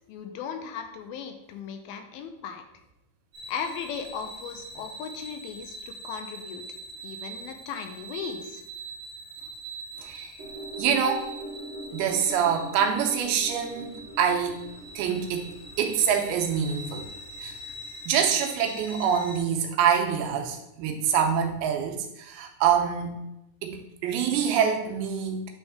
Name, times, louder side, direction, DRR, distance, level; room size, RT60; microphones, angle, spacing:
voice 1, 0.1-2.6 3.5-6.6 7.0-8.6, left 7 dB, 85° left, 6 dB, 2.4 m, -37 dB
sound 1, 3.3-19.4, right 2 dB, 20° right, 1.5 m, -43 dB
voice 2, 10.0-10.3 10.8-11.3 11.9-14.6 15.0-15.5 15.8-17.1 17.4-17.6 18.1-23.1 23.6-25.5, right 7 dB, 85° right, 3 dB, 2.7 m, -25 dB
sound 2, 10.4-18.8 19.1-19.2, right 1 dB, 55° right, 2.2 m, -43 dB
9.1 x 3.5 x 3.4 m, 0.87 s
omnidirectional pair, 4.4 m